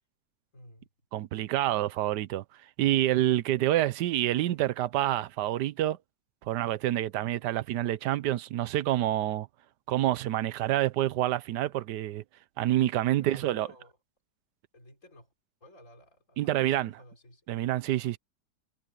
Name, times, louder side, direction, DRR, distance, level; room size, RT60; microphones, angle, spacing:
voice 1, 0.5-0.9 4.2-4.6 13.1-14.0 14.7-15.3 15.6-17.5, left 1 dB, 50° left, 5.5 m, -53 dB
voice 2, 1.1-2.4 2.8-6.0 6.4-9.5 9.9-12.2 12.6-13.7 16.4-16.9 17.5-18.2, right 13 dB, 85° right, 1.3 m, -27 dB
omnidirectional pair, 1.7 m